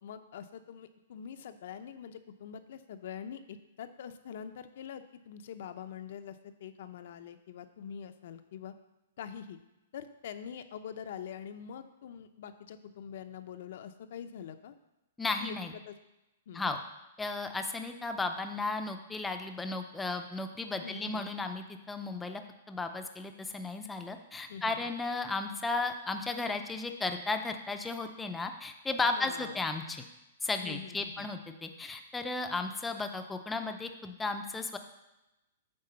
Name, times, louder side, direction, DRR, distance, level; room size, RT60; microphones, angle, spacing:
voice 1, 0.0-8.8 9.2-9.6 9.9-14.7 15.4-15.9 16.5-16.7 20.8-21.3 24.5-24.9 29.0-29.6 30.6-31.3, left 8 dB, 60° left, 9 dB, 0.7 m, -44 dB
voice 2, 15.2-15.7 16.5-16.8 17.2-22.4 22.7-30.0 30.4-34.8, left 3 dB, 10° left, 6 dB, 0.6 m, -34 dB
8.9 x 3.8 x 6.8 m, 0.96 s
hypercardioid pair, 155°, 0 cm